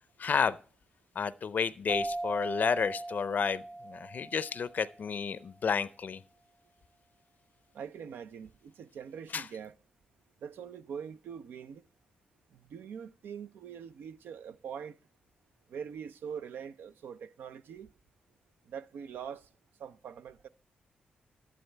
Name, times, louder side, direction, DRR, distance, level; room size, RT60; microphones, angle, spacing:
voice 1, 0.2-0.6 1.1-6.2 9.3-9.5, left 6 dB, 60° left, 0.5 m, -31 dB
sound 1, 1.9-5.2, right 2 dB, 40° right, 2.1 m, -39 dB
voice 2, 7.7-9.7 10.4-11.8 12.5-15.0 15.7-17.9 18.7-19.5 19.8-20.5, right 7 dB, 80° right, 0.5 m, -43 dB
11.5 x 11.0 x 3.4 m
cardioid pair, 60°, 3 cm